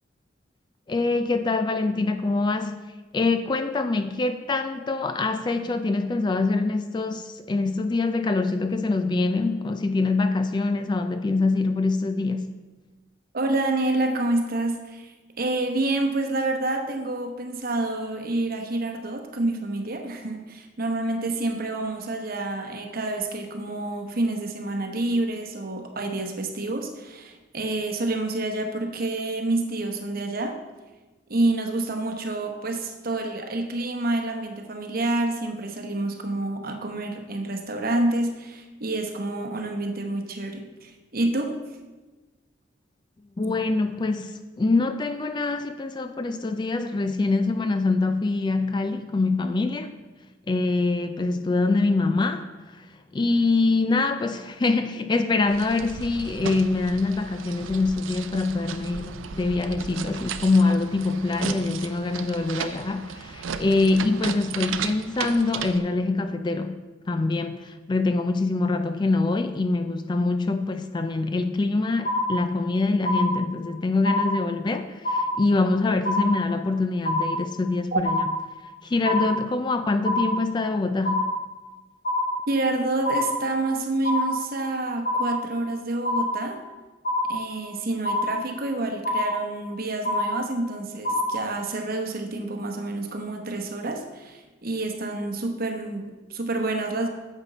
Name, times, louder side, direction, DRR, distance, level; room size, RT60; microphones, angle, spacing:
voice 1, 0.9-2.8 3.1-12.5 43.4-49.9 50.5-66.8 67.1-78.3 78.8-81.3, left 3 dB, 25° left, 9 dB, 0.3 m, -24 dB
voice 2, 13.3-30.6 31.3-41.6 77.9-78.0 82.5-86.6 87.3-97.1, right 2 dB, 50° right, 4 dB, 1.0 m, -28 dB
sound 1, 55.5-65.8, right 6 dB, 85° right, 0.5 m, -35 dB
sound 2, 72.0-72.7 73.0-73.7 74.0-74.7 75.0-75.7 76.0-76.7 77.0-77.7 78.0-78.7 79.0-79.7 80.0-80.7 81.0-81.7 82.0-82.7 83.0-83.7 84.0-84.7 85.0-85.7 86.0-86.7 87.0-87.7 88.0-88.7 89.0-89.7 90.0-90.7 91.0-91.7, left 1 dB, 40° left, 2.4 m, -27 dB
9.5 x 7.2 x 4.1 m, 1.2 s
head